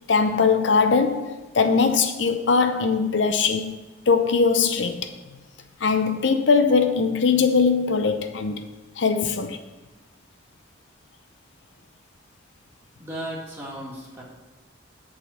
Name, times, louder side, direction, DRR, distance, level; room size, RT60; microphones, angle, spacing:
voice 1, 0.1-3.7 4.1-5.1 5.8-8.7 9.0-9.6, left 5 dB, 75° left, 0.6 m, -21 dB
voice 2, 13.0-14.2, right 1 dB, 15° right, 2.0 m, -35 dB
8.7 x 4.2 x 6.8 m
head